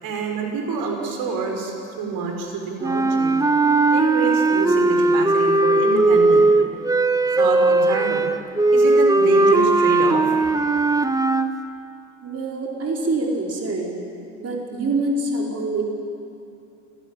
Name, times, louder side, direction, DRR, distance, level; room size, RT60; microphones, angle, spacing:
voice 1, 0.0-3.3 3.9-6.5 7.4-8.3 8.7-10.3, right 4 dB, 60° right, 3 dB, 5.6 m, -27 dB
sound 1, 2.8-11.5, right 2 dB, 10° right, 1.1 m, -18 dB
voice 2, 12.2-14.1 14.4-15.8, right 2 dB, 35° right, -1 dB, 4.8 m, -25 dB
27.5 x 15.5 x 9.0 m, 2.8 s
hypercardioid pair, 65°, 40 cm